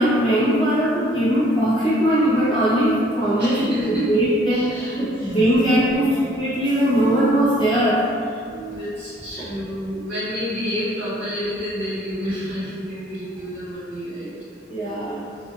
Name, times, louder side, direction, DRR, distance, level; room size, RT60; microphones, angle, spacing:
voice 1, 0.0-8.0 9.4-9.5 14.7-15.2, equal, 25° left, -11 dB, 1.0 m, -20 dB
sound 1, 2.1-3.4 3.7-9.0, right 4 dB, 60° left, 1.5 m, -36 dB
voice 2, 3.4-4.1 4.5-5.3 8.7-14.3, equal, 5° right, -20 dB, 1.3 m, -29 dB
2.6 x 2.4 x 2.3 m, 2.3 s
head